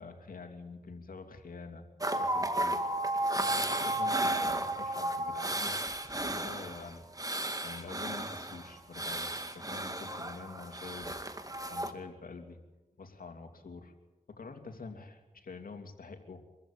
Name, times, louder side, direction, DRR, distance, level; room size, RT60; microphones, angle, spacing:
voice 1, 0.0-1.8 2.2-5.7 6.2-12.6 13.0-13.9 14.3-16.4, left 4 dB, 75° left, 5 dB, 2.9 m, -47 dB
sound 1, 2.0-11.9, right 1 dB, 25° right, 2.1 m, -33 dB
25.5 x 14.5 x 8.9 m, 1.1 s
cardioid pair, 45°, 15 cm